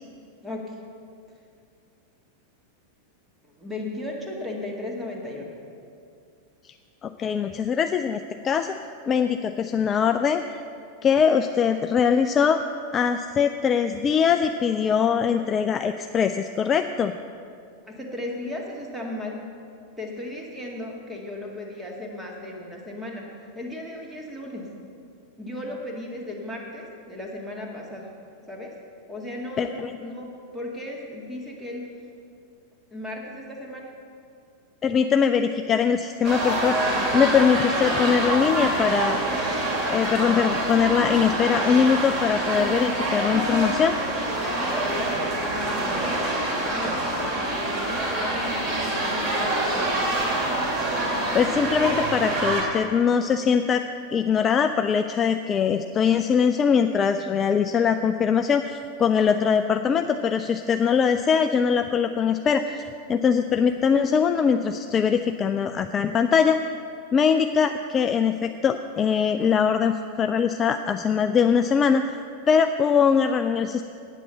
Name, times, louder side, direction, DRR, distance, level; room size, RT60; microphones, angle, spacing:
voice 1, 0.4-0.8 3.4-5.5 17.8-19.4 20.0-23.3 23.5-24.7 25.4-28.1 28.5-28.7 29.1-31.9 32.9-33.9 44.6-50.1, left 1 dB, 5° right, -1 dB, 1.8 m, -35 dB
voice 2, 7.0-8.7 9.1-10.6 11.0-12.6 12.9-17.1 29.6-29.9 34.8-39.2 39.9-44.0 50.8-50.9 51.3-53.8 54.1-66.6 67.1-72.2 72.5-73.8, left 6 dB, 25° left, 7 dB, 0.3 m, -22 dB
sound 1, 36.2-52.6, right 1 dB, 30° right, 2.6 m, -26 dB
9.1 x 8.2 x 6.8 m, 2.4 s
figure-of-eight pair, 90°, 0 cm